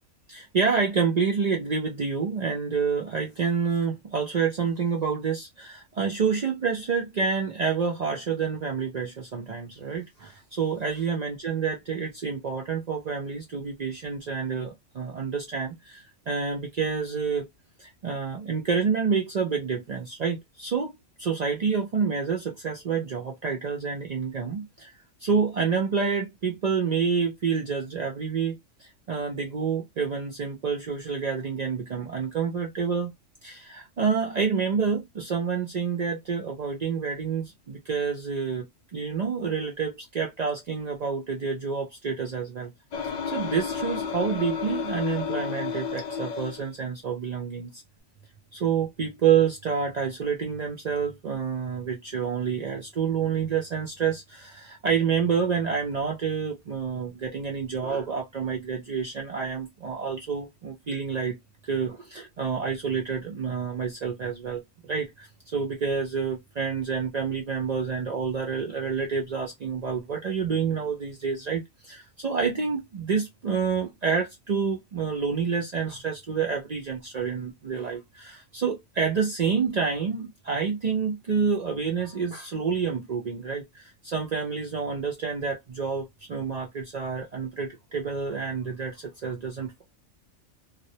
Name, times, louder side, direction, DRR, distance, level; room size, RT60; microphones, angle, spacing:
voice 1, 0.3-17.5 17.8-24.9 25.2-33.1 33.4-38.6 38.9-42.7 43.0-47.8 48.5-61.4 61.7-89.8, right 6 dB, 70° right, 0.4 m, -28 dB
sound 1, 42.9-46.7, left 6 dB, 70° left, 0.4 m, -31 dB
2.3 x 2.0 x 2.7 m
omnidirectional pair, 1.3 m